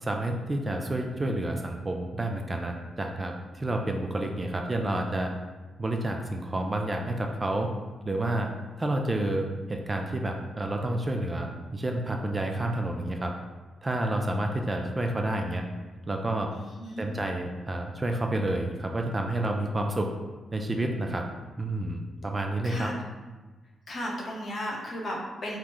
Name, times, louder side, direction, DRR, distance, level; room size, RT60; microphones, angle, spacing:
voice 1, 0.0-5.3 5.8-7.7 8.0-8.5 8.8-13.3 13.8-15.6 16.1-16.5 17.0-20.1 20.5-21.3 21.6-22.9, right 1 dB, 25° right, 3 dB, 0.3 m, -29 dB
voice 2, 16.6-17.0 22.6-22.9 23.9-25.6, equal, 50° left, -2 dB, 0.7 m, -35 dB
3.5 x 2.0 x 3.0 m, 1.3 s
cardioid pair, 95°, 0 cm